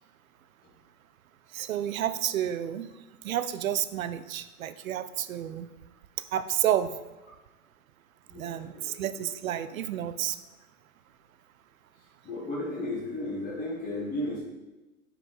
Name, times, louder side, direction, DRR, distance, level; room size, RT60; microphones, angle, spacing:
voice 1, 1.5-2.9 3.2-5.7 6.3-6.9 8.4-10.4, right 11 dB, 70° right, 12 dB, 0.5 m, -30 dB
voice 2, 8.3-8.9 12.2-14.4, left 1 dB, 20° left, -5 dB, 1.2 m, -34 dB
5.5 x 4.7 x 3.8 m, 1.1 s
figure-of-eight pair, 100°, 43 cm